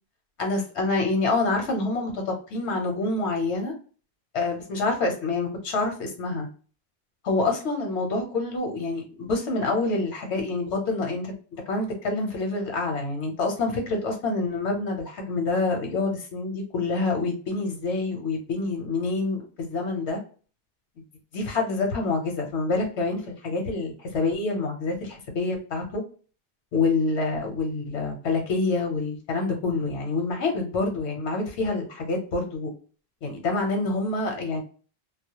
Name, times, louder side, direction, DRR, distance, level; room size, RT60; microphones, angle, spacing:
voice 1, 0.4-3.7 4.3-6.5 7.2-11.3 11.7-20.2 21.3-26.0 26.7-32.7 33.2-34.6, left 3 dB, 90° left, 3 dB, 1.0 m, -27 dB
2.3 x 2.0 x 2.7 m, 0.39 s
omnidirectional pair, 1.1 m